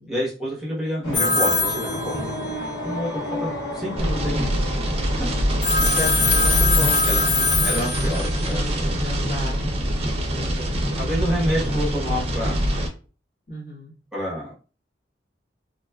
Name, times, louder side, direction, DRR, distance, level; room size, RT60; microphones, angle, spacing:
voice 1, 0.1-2.2 2.8-3.1 3.4-4.6 7.1-7.3 7.6-8.9 11.0-12.6 14.1-14.6, equal, 5° right, -6 dB, 0.8 m, -28 dB
sound 1, 1.0-6.7, left 1 dB, 80° left, 0.8 m, -31 dB
Telephone, 1.1-2.7 5.6-8.5, left 3 dB, 25° left, 0.5 m, -22 dB
sound 2, 4.0-12.9, equal, 35° right, 0.5 m, -24 dB
voice 2, 5.8-10.7 13.5-13.9, equal, 55° left, -3 dB, 1.0 m, -35 dB
2.6 x 2.2 x 2.2 m, 0.36 s
head